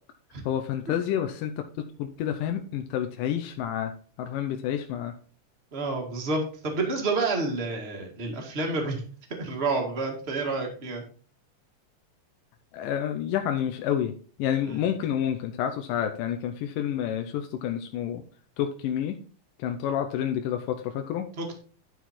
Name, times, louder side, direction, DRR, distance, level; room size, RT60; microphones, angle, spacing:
voice 1, 0.5-1.6 2.0-3.9 4.2-5.1 12.7-14.1 14.4-18.2 18.6-19.2 19.6-21.3, left 10 dB, 85° left, 5 dB, 2.3 m, -29 dB
voice 2, 5.7-9.0 9.3-11.0 14.6-14.8 21.4-21.5, right 3 dB, 30° right, 2 dB, 1.3 m, -29 dB
11.0 x 4.6 x 4.2 m, 0.43 s
omnidirectional pair, 3.8 m